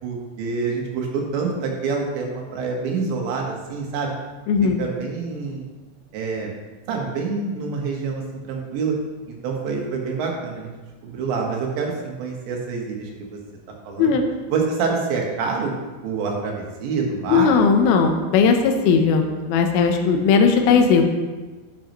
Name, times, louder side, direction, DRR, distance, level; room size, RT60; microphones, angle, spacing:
voice 1, 0.0-4.1 4.8-5.6 6.1-6.5 6.9-8.9 9.3-10.7 11.0-13.4 13.9-14.1 14.5-15.7 16.0-17.5, right 4 dB, 85° right, 0 dB, 3.7 m, -26 dB
voice 2, 4.5-4.8 14.0-14.2 17.3-21.0, left 5 dB, 75° left, 4 dB, 2.4 m, -17 dB
10.5 x 8.5 x 3.1 m, 1.2 s
omnidirectional pair, 5.0 m